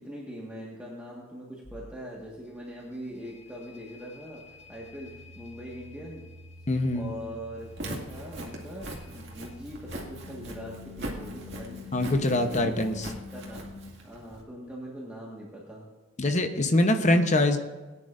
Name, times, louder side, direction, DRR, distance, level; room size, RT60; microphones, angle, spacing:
voice 1, 0.0-4.4 4.7-6.3 6.7-13.0 13.3-13.7 14.0-15.9, equal, 5° right, -5 dB, 1.6 m, -42 dB
sound 1, 1.6-13.9, left 3 dB, 60° left, 1.7 m, -47 dB
voice 2, 6.7-7.1 11.9-13.1 16.2-17.6, left 1 dB, 35° left, 7 dB, 0.9 m, -24 dB
Walk footsteps, 7.6-14.4, right 1 dB, 50° right, 2.2 m, -41 dB
19.0 x 10.0 x 2.6 m, 1.3 s
head